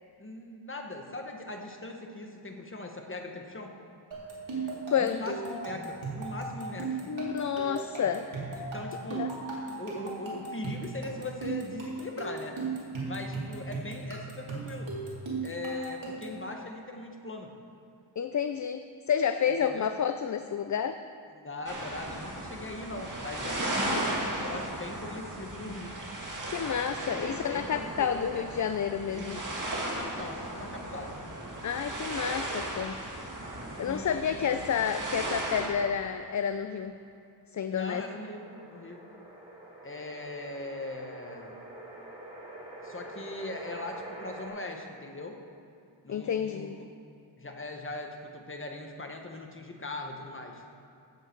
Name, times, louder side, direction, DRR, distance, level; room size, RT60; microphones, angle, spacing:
voice 1, 0.2-3.7 5.0-7.3 8.5-9.4 9.7-12.6 13.0-14.9 15.4-17.5 19.6-19.9 21.3-26.0 27.1-28.5 29.1-31.2 33.8-34.5 37.7-39.0 39.8-41.6 42.8-45.4 46.0-46.9 47.4-50.6, left 2 dB, 25° left, 3 dB, 1.3 m, -40 dB
sound 1, 4.1-16.4, right 3 dB, 90° right, 2.5 m, -37 dB
voice 2, 4.9-5.2 7.1-8.3 9.2-9.3 18.2-21.0 23.9-24.2 26.4-29.4 31.6-33.0 33.8-36.9 37.5-38.0 46.1-46.8, left 7 dB, 45° left, 9 dB, 0.4 m, -30 dB
sound 2, 21.7-35.7, right 1 dB, 40° right, 2.1 m, -36 dB
sound 3, 37.9-44.5, right 1 dB, 15° right, 3.2 m, -46 dB
14.5 x 7.8 x 4.6 m, 2.5 s
wide cardioid pair, 75°, 45 cm